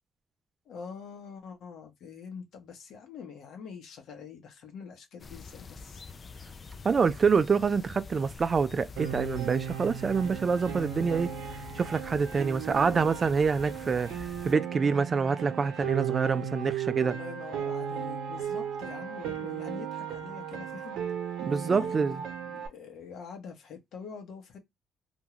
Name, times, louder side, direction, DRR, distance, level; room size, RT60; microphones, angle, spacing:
voice 1, 0.7-6.0 17.0-21.0 21.6-22.1 22.5-24.6, left 6 dB, 75° left, 1.1 m, -44 dB
sound 1, 5.2-14.5, left 5 dB, 35° left, 0.3 m, -46 dB
voice 2, 6.8-11.3 11.8-14.1 14.4-17.1 21.4-22.2, right 5 dB, 40° right, 0.3 m, -26 dB
Piano, 9.0-22.7, right 9 dB, 90° right, 0.7 m, -36 dB
2.6 x 2.3 x 3.0 m
cardioid pair, 90°, 0 cm